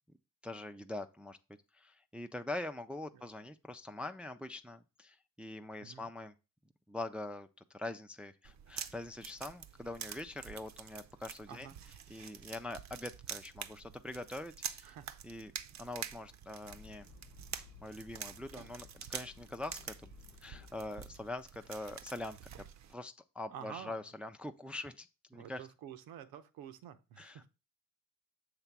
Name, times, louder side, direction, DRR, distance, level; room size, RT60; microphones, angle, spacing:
voice 1, 0.4-1.4 1.7-6.3 6.9-11.7 12.1-15.0 15.2-15.5 15.8-17.1 17.8-20.1 20.4-22.4 22.9-25.6 27.2-27.5, left 2 dB, 5° right, 7 dB, 0.4 m, -43 dB
voice 2, 5.8-6.1 11.5-11.8 14.8-15.1 23.5-24.1 25.3-27.5, right 9 dB, 90° right, 10 dB, 0.9 m, -49 dB
sound 1, 8.4-22.9, right 9 dB, 55° right, 0.6 m, -47 dB
sound 2, 16.6-21.3, left 5 dB, 75° left, 1.0 m, -58 dB
7.0 x 3.3 x 5.9 m, 0.29 s
cardioid pair, 90°, 35 cm